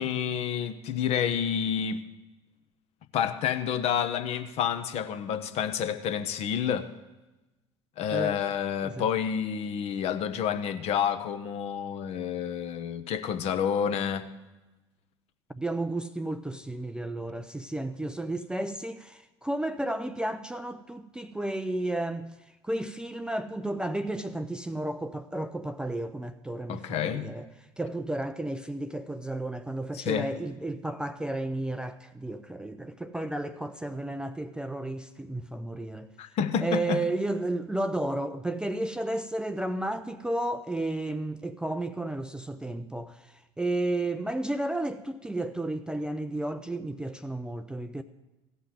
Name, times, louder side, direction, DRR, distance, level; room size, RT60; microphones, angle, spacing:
voice 1, 0.0-2.0 3.1-6.9 8.0-14.3 26.7-27.3 29.9-30.3 36.2-37.0, left 8 dB, 45° left, 0.8 m, -29 dB
voice 2, 15.5-22.4 22.6-27.5 27.8-36.1 36.6-43.3 43.6-48.0, right 1 dB, 5° right, 0.4 m, -32 dB
15.5 x 5.6 x 7.6 m
figure-of-eight pair, 65°, 15 cm